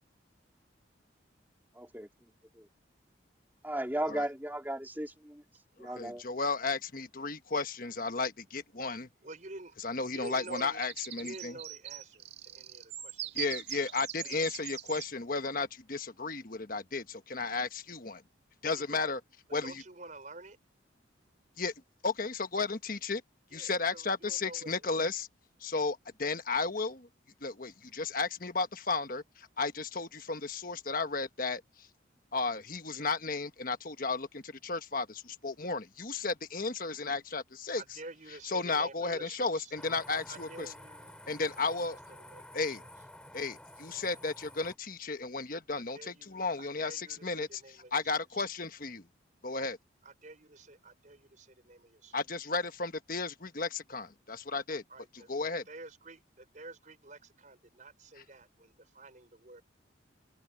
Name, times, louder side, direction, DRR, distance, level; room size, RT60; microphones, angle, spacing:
voice 1, 1.8-2.1 2.6-2.7 3.6-5.4 5.8-6.2, right 1 dB, 10° right, 2.6 m, -35 dB
voice 2, 6.0-9.1 9.8-11.5 13.3-18.2 18.6-19.2 19.5-19.8 21.6-21.7 22.0-23.2 23.5-25.3 25.6-27.1 27.4-31.6 32.3-37.8 38.4-40.7 41.3-42.0 42.5-42.8 43.3-49.0 49.4-49.8 52.1-54.8 55.3-55.6, left 4 dB, 45° left, 1.3 m, -34 dB
voice 3, 9.2-9.7 10.1-10.8 11.2-13.5 13.8-14.4 18.7-19.0 19.6-20.6 23.5-25.0 37.7-39.7 40.3-41.1 41.4-41.9 42.2-42.4 42.7-42.8 45.7-48.5 50.0-52.1 54.9-59.6, right 2 dB, 40° right, 4.9 m, -49 dB
sound 1, 10.1-15.1, right 12 dB, 60° right, 2.0 m, -42 dB
sound 2, 39.8-44.8, left 1 dB, 5° left, 2.7 m, -51 dB
head